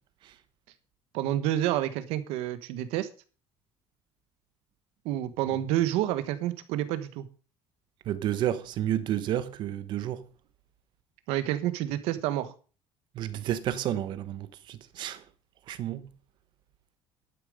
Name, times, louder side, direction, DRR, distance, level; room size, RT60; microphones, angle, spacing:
voice 1, 1.1-3.1 5.0-7.3 11.3-12.5, right 13 dB, 90° right, 1.4 m, -29 dB
voice 2, 8.1-10.2 13.1-15.2 15.7-16.1, right 11 dB, 50° right, 1.1 m, -31 dB
12.0 x 9.3 x 5.0 m
cardioid pair, 170°, 10 cm